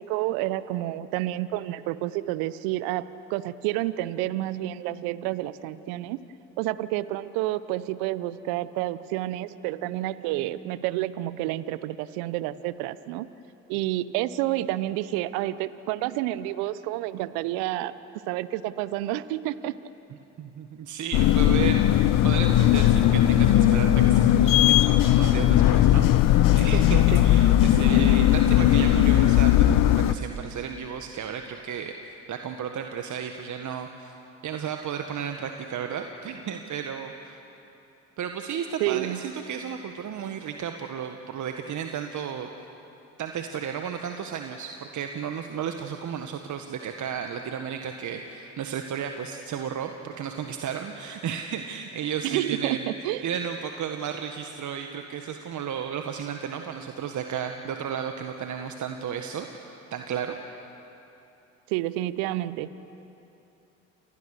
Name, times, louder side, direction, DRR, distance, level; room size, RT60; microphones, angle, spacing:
voice 1, 0.0-3.0 3.3-6.2 6.6-13.3 13.7-17.9 18.3-19.7 26.7-27.2 38.8-39.2 52.2-53.3 61.7-62.7, right 15 dB, 70° right, 16 dB, 1.0 m, -29 dB
voice 2, 20.4-31.9 32.3-34.1 34.4-37.4 38.2-42.5 43.2-60.4, right 7 dB, 50° right, 5 dB, 1.7 m, -33 dB
sound 1, 21.1-30.1, left 12 dB, 60° left, 1.1 m, -18 dB
29.5 x 28.0 x 6.7 m, 2.9 s
hypercardioid pair, 55°, 38 cm